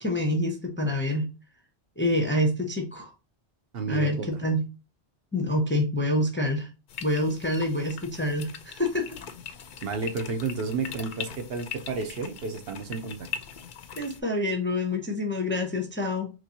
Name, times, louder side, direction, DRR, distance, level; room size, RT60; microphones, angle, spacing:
voice 1, 0.0-1.3 2.0-3.1 3.9-4.6 5.3-6.7 7.0-9.2 14.0-16.3, left 1 dB, 15° left, 0.6 m, -27 dB
voice 2, 3.7-4.4 9.8-13.3, right 4 dB, 65° right, 0.9 m, -31 dB
sound 1, 6.9-14.2, left 7 dB, 55° left, 0.6 m, -41 dB
4.2 x 3.1 x 2.7 m
omnidirectional pair, 1.1 m